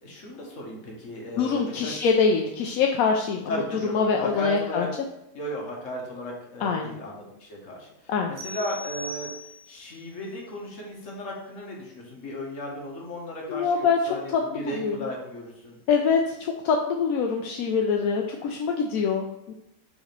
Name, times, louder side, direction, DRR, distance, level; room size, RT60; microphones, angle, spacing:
voice 1, 0.0-2.1 3.5-4.9 5.3-9.3 9.7-15.8, left 1 dB, 50° left, -1 dB, 1.6 m, -35 dB
voice 2, 1.4-3.5 3.9-4.9 6.6-6.9 8.1-8.3 13.5-14.0 14.3-15.0 15.9-19.5, left 5 dB, 70° left, 2 dB, 0.9 m, -24 dB
sound 1, 8.4-9.9, equal, 75° right, 1.7 m, -39 dB
5.0 x 4.1 x 5.1 m, 0.85 s
omnidirectional pair, 1.8 m